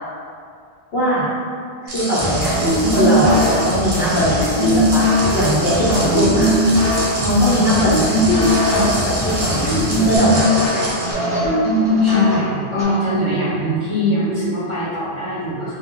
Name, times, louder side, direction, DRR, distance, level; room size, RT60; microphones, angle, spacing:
voice 1, 0.9-1.3 1.8-2.5 2.9-5.0 5.3-6.6 7.2-10.8, equal, 65° left, -9 dB, 1.1 m, -19 dB
sound 1, 1.9-11.1, right 1 dB, 50° right, 0.7 m, -28 dB
sound 2, 2.2-10.2, left 2 dB, 45° left, 0.4 m, -28 dB
sound 3, 2.2-12.8, equal, 5° right, 1.0 m, -19 dB
voice 2, 12.0-15.8, equal, 30° left, -12 dB, 1.0 m, -22 dB
2.5 x 2.2 x 3.6 m, 2.3 s
omnidirectional pair, 1.1 m